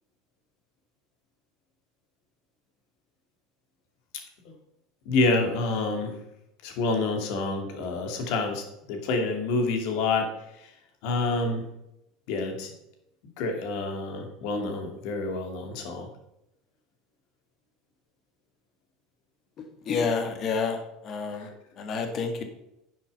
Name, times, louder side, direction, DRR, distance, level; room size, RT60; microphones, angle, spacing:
voice 1, 5.1-6.1 6.6-8.6 8.9-10.3 11.0-11.6 12.3-12.7 13.4-16.1 21.4-21.5, left 3 dB, 60° left, 4 dB, 2.5 m, -27 dB
voice 2, 19.9-20.8 21.0-21.5 21.8-22.4, left 5 dB, 45° left, 6 dB, 2.1 m, -28 dB
9.8 x 7.4 x 5.4 m, 0.83 s
figure-of-eight pair, 75°, 0 cm